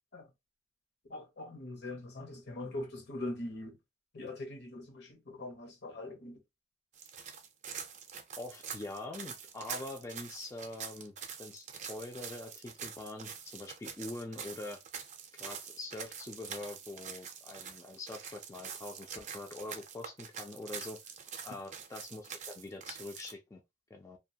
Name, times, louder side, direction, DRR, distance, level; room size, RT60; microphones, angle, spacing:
voice 1, 1.1-3.8 4.1-6.4, left 2 dB, 60° left, 0.8 m, -42 dB
sound 1, 6.9-23.3, right 7 dB, 40° right, 0.5 m, -45 dB
voice 2, 8.4-11.1 11.4-14.8 15.4-21.1 21.4-23.6 23.9-24.2, left 2 dB, 15° left, 0.3 m, -44 dB
2.4 x 2.2 x 2.7 m
head